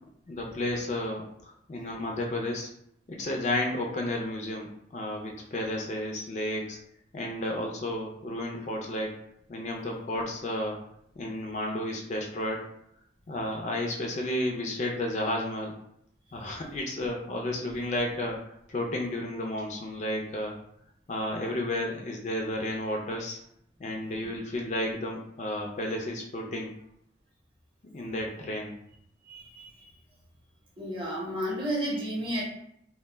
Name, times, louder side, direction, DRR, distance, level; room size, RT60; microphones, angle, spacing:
voice 1, 0.3-2.7 3.1-6.8 7.1-9.1 9.5-10.8 11.2-12.7 13.3-15.7 16.3-18.4 18.7-20.5 21.1-23.4 23.8-26.7 27.9-28.8, left 1 dB, 40° left, 0 dB, 0.4 m, -32 dB
voice 2, 29.2-29.9 30.8-32.4, equal, 30° right, -4 dB, 0.7 m, -33 dB
2.1 x 2.1 x 3.3 m, 0.73 s
head